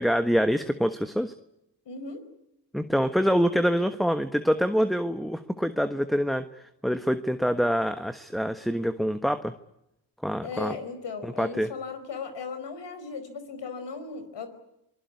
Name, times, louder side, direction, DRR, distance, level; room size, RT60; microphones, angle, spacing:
voice 1, 0.0-1.3 2.7-9.5 10.2-10.8 11.2-11.7, equal, ahead, 9 dB, 1.3 m, -26 dB
voice 2, 1.8-2.3 10.4-14.5, left 5 dB, 70° left, 10 dB, 4.7 m, -37 dB
26.0 x 19.5 x 9.6 m, 0.86 s
supercardioid pair, 55°, 43 cm